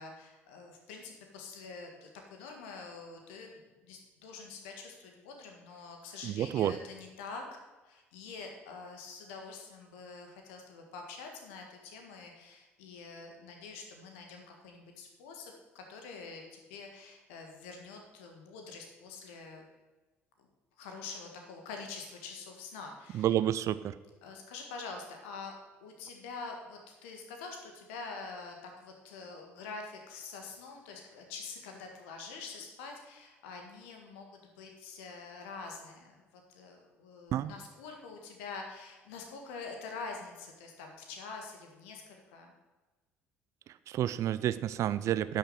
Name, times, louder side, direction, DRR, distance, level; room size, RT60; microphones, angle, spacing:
voice 1, 0.0-7.6 7.8-19.7 20.8-23.2 24.2-25.5 25.8-42.5, left 4 dB, 70° left, 3 dB, 1.7 m, -46 dB
voice 2, 6.2-6.8 23.1-24.0 37.3-37.5 43.9-45.4, right 11 dB, 50° right, 15 dB, 0.5 m, -30 dB
10.0 x 6.5 x 7.6 m, 1.2 s
figure-of-eight pair, 55°, 7 cm